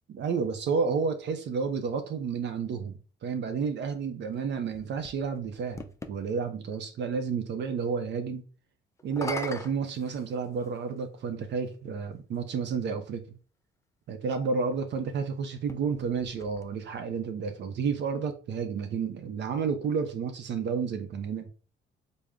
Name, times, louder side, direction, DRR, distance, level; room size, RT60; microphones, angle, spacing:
voice 1, 0.1-8.4 9.0-13.2 14.1-21.5, right 5 dB, 65° right, 0.5 m, -31 dB
sound 1, 4.3-6.2 9.0-10.8 11.7-11.8 15.5-17.1, left 2 dB, 15° left, 0.4 m, -41 dB
3.6 x 2.1 x 3.3 m
cardioid pair, 90°, 20 cm